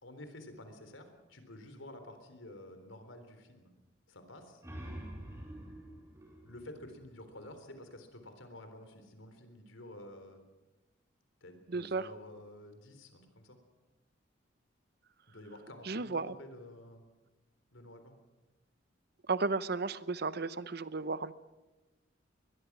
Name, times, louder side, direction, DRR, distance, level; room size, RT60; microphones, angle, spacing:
voice 1, 0.0-3.7 4.1-4.6 6.4-10.5 11.4-13.6 15.3-17.1 17.7-18.2, left 1 dB, 90° left, 7 dB, 3.7 m, -50 dB
sound 1, 4.4-7.8, right 1 dB, 15° right, 4.8 m, -47 dB
voice 2, 11.7-12.0 15.9-16.3 19.3-21.3, right 3 dB, 55° right, 15 dB, 0.8 m, -34 dB
22.0 x 21.5 x 6.1 m, 1.1 s
head